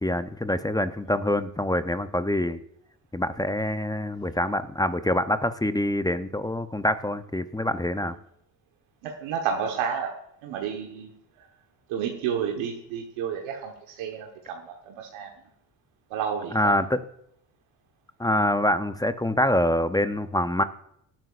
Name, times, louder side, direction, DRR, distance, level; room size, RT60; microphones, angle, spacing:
voice 1, 0.0-2.6 3.1-8.1 16.5-17.0 18.2-20.6, left 1 dB, 10° left, 11 dB, 0.6 m, -25 dB
voice 2, 9.0-10.2 10.4-11.1 11.9-15.3 16.1-16.8, right 7 dB, 75° right, 2 dB, 1.4 m, -31 dB
19.5 x 8.9 x 2.5 m, 0.73 s
supercardioid pair, 70°, 48 cm